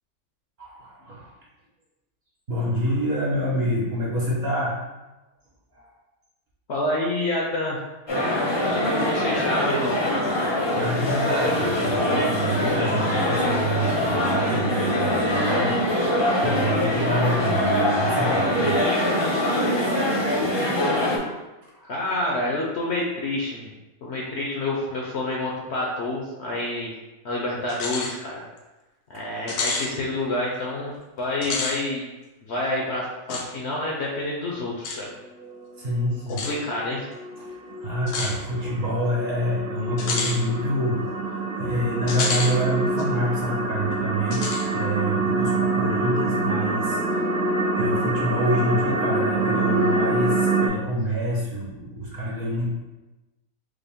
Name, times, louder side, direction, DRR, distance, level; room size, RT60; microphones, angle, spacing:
voice 1, 0.6-1.3 2.5-4.8 5.7-5.9 10.7-18.8 21.7-21.9 29.1-29.2 35.8-36.5 37.4-47.0 47.8-52.7, equal, 45° right, -5 dB, 1.1 m, -27 dB
voice 2, 6.7-7.9 8.8-10.0 21.8-23.7 24.0-26.9 27.2-28.5 29.1-30.9 31.2-32.0 32.4-35.1 36.4-37.0, left 1 dB, 60° left, -2 dB, 0.8 m, -28 dB
sound 1, 8.1-21.2, left 1 dB, 25° left, 0.6 m, -23 dB
sound 2, 27.7-28.1 28.6-28.7 29.5-29.9 31.3-31.8 33.3-33.5 34.8-35.0 36.3-36.5 38.1-38.4 40.0-40.4 42.1-42.5 43.0-43.1 44.3-44.7, left 4 dB, 85° left, 1.2 m, -28 dB
sound 3, 35.4-50.7, right 2 dB, 65° right, 0.6 m, -26 dB
5.0 x 2.1 x 3.5 m, 1.1 s
omnidirectional pair, 1.6 m